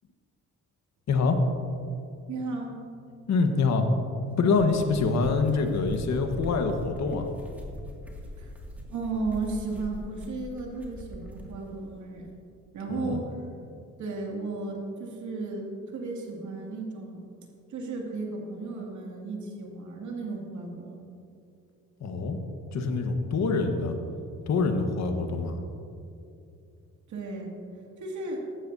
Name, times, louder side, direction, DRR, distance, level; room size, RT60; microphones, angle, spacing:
voice 1, 1.1-1.4 3.3-3.9 4.4-7.3 12.9-13.2 22.0-22.4 22.7-24.0 24.5-25.6, left 4 dB, 65° left, 5 dB, 1.4 m, -25 dB
voice 2, 2.3-2.8 8.2-8.5 8.9-12.3 12.7-13.4 14.0-17.3 17.7-21.1 27.1-27.6 28.0-28.4, right 3 dB, 70° right, 0 dB, 2.4 m, -34 dB
sound 1, 4.4-11.5, left 1 dB, 5° right, 2.2 m, -42 dB
15.5 x 12.0 x 2.7 m, 2.6 s
cardioid pair, 90°, 30 cm